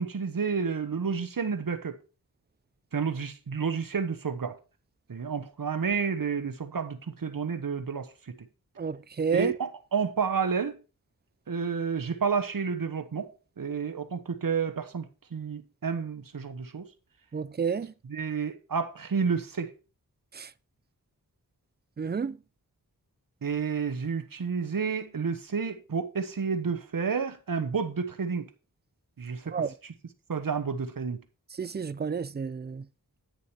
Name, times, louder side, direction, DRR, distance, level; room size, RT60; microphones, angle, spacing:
voice 1, 0.0-2.0 2.9-4.6 5.1-8.5 9.3-10.8 11.5-13.3 13.6-16.9 18.1-19.7 23.4-28.5 29.2-29.6 30.3-31.2, right 5 dB, 65° right, 1.1 m, -30 dB
voice 2, 8.8-9.5 17.3-17.9 20.3-20.5 22.0-22.4 29.5-29.7 31.6-32.9, right 6 dB, 30° right, 0.4 m, -30 dB
9.9 x 6.6 x 4.4 m
wide cardioid pair, 80°, 37 cm